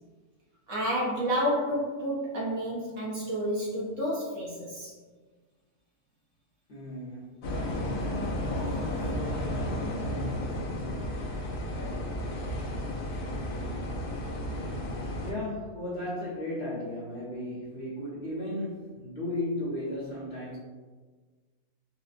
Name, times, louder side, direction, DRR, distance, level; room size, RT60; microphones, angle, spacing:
voice 1, 0.7-4.9, equal, 60° right, -6 dB, 1.1 m, -30 dB
voice 2, 6.7-7.4 15.2-20.6, left 1 dB, 45° left, -9 dB, 0.9 m, -35 dB
sound 1, 7.4-15.3, left 1 dB, 90° left, 1.2 m, -32 dB
4.2 x 2.0 x 2.4 m, 1.4 s
omnidirectional pair, 1.6 m